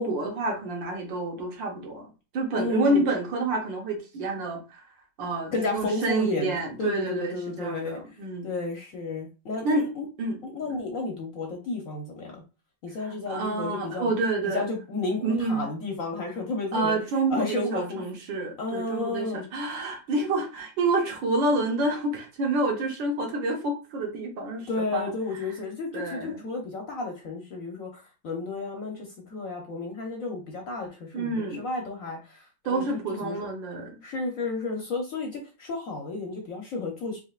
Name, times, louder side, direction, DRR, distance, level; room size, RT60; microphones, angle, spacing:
voice 1, 0.0-2.1 2.3-4.8 5.2-8.5 9.6-9.8 10.2-10.8 13.0-14.6 15.2-15.7 16.7-25.0 25.9-26.4 31.1-31.6 32.6-34.0, right 2 dB, 65° right, 1 dB, 1.7 m, -28 dB
voice 2, 2.6-3.0 5.5-8.0 8.4-10.0 10.4-12.4 12.8-14.1 14.4-17.0 17.3-18.0 18.6-19.5 24.7-33.4 34.0-37.2, left 3 dB, 60° left, 1 dB, 0.9 m, -32 dB
4.4 x 3.4 x 2.4 m, 0.32 s
omnidirectional pair, 2.2 m